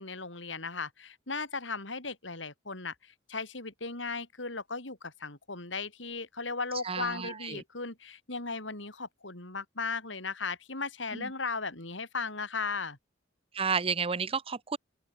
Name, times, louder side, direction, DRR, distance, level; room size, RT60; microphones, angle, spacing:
voice 1, 0.0-13.0, left 4 dB, 80° left, 5.7 m, -37 dB
voice 2, 6.8-7.6 11.1-11.3 13.5-14.8, right 5 dB, 30° right, 0.7 m, -31 dB
open air
head